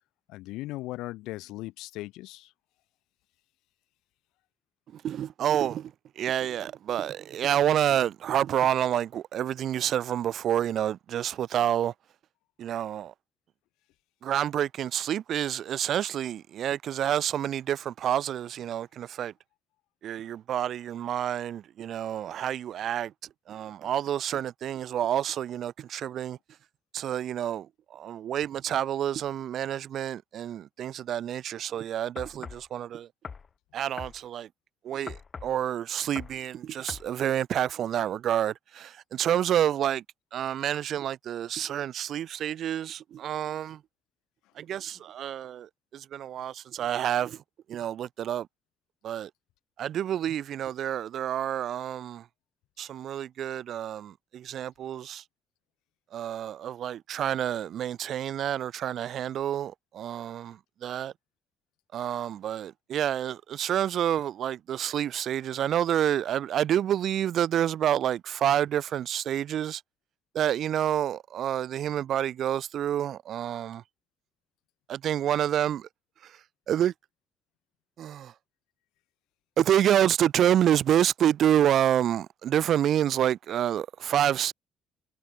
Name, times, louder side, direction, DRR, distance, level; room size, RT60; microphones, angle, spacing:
voice 1, 0.3-2.5, left 18 dB, 85° left, 1.3 m, -38 dB
voice 2, 4.9-5.9 6.2-11.9 12.6-13.1 14.2-19.3 20.0-23.1 23.5-26.4 26.9-27.7 27.9-33.1 33.7-34.5 34.8-35.2 35.4-40.0 40.3-43.8 44.6-47.4 47.7-48.5 49.0-49.3 49.8-52.2 52.8-55.2 56.1-61.1 61.9-69.8 70.3-73.8 74.9-75.9 76.7-76.9 78.0-78.3 79.6-84.5, right 10 dB, 65° right, 0.8 m, -28 dB
sound 1, 32.2-32.7 33.2-33.5 34.0-34.2 35.1-35.6 36.2-36.4 36.9-37.1, left 5 dB, 45° left, 2.3 m, -41 dB
supercardioid pair, 60°, 0 cm